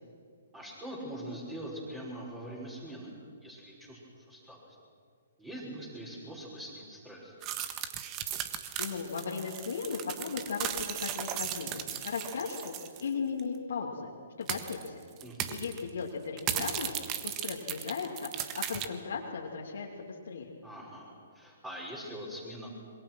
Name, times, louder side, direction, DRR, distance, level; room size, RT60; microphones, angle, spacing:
voice 1, 0.5-3.2 3.4-4.0 4.3-4.6 5.4-7.3 15.2-15.6 20.6-22.7, right 1 dB, 10° right, -4 dB, 5.9 m, -43 dB
sound 1, 7.4-13.1 13.4-13.5 14.5-14.9 15.2-15.8 16.4-18.9, right 10 dB, 30° right, 1.5 m, -36 dB
voice 2, 8.3-12.7 13.0-14.1 14.4-15.0 15.5-16.9 17.2-18.3 18.5-20.5, left 5 dB, 70° left, -2 dB, 2.5 m, -37 dB
26.0 x 22.5 x 6.2 m, 2.1 s
hypercardioid pair, 130°, 0 cm